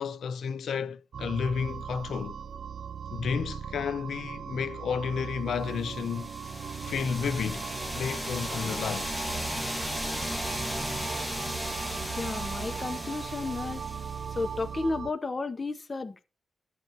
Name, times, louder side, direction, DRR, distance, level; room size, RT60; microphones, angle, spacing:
voice 1, 0.0-2.4 3.1-6.3 6.8-7.7 7.9-9.1, left 6 dB, 80° left, 0.4 m, -31 dB
sound 1, 1.1-15.1, right 7 dB, 65° right, 0.3 m, -39 dB
Buzzsaw Addiction, 5.9-14.6, equal, 5° left, 1.3 m, -35 dB
voice 2, 12.2-13.9 14.4-16.3, left 3 dB, 30° left, 0.6 m, -33 dB
10.5 x 7.0 x 2.7 m
cardioid pair, 105°, 0 cm